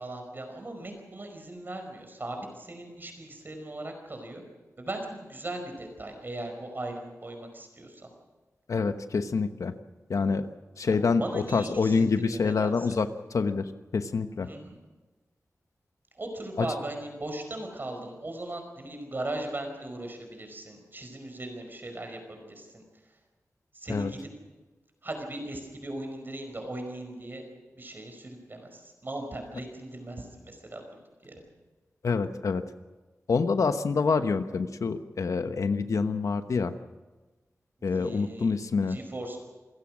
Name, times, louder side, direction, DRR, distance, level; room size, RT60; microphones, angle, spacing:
voice 1, 0.0-4.4 4.8-8.1 10.9-12.9 14.4-14.8 16.2-22.8 23.7-24.3 25.0-27.4 27.8-30.8 31.2-31.4 37.8-38.5 38.9-39.4, right 1 dB, 40° right, 4 dB, 5.0 m, -38 dB
voice 2, 8.7-9.7 10.1-10.5 10.8-13.7 13.9-14.5 16.6-16.7 23.9-24.1 32.0-32.6 33.3-36.7 37.8-39.0, left 4 dB, 75° left, 9 dB, 1.1 m, -26 dB
27.5 x 16.0 x 6.3 m, 1.2 s
wide cardioid pair, 125°, 5 cm